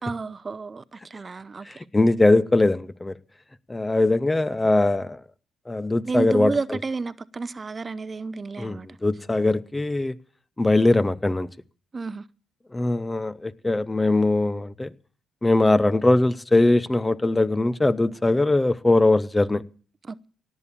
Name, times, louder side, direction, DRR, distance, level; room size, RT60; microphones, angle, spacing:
voice 1, 0.0-1.7 6.0-8.9 11.9-12.2 20.0-20.3, right 4 dB, 30° right, 0.7 m, -31 dB
voice 2, 1.7-3.1 3.7-5.2 5.7-6.5 8.6-10.2 10.6-11.5 12.7-14.9 15.4-19.6, left 2 dB, 15° left, 0.7 m, -21 dB
18.0 x 8.3 x 7.2 m
cardioid pair, 90°, 0 cm